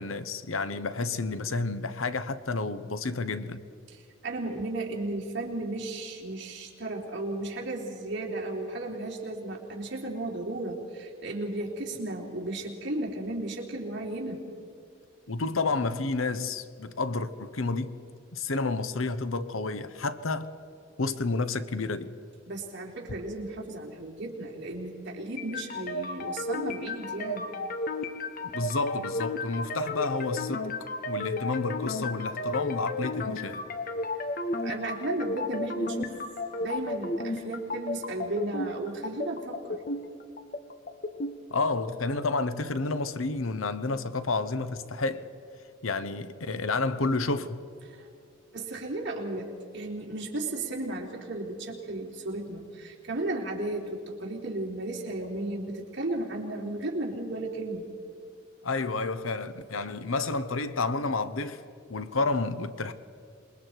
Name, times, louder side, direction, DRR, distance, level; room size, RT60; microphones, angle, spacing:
voice 1, 0.0-3.6 15.3-18.0 18.3-20.5 21.0-22.1 28.5-30.7 31.1-33.6 41.5-45.3 45.8-47.6 58.6-61.6 61.9-62.9, left 3 dB, 85° left, 1.0 m, -30 dB
voice 2, 3.9-14.4 22.5-27.5 34.6-36.2 36.6-39.8 47.9-48.1 48.5-57.8, right 2 dB, 60° right, 3.6 m, -34 dB
sound 1, 25.4-41.4, left 2 dB, 45° left, 1.0 m, -34 dB
27.0 x 22.0 x 4.6 m
head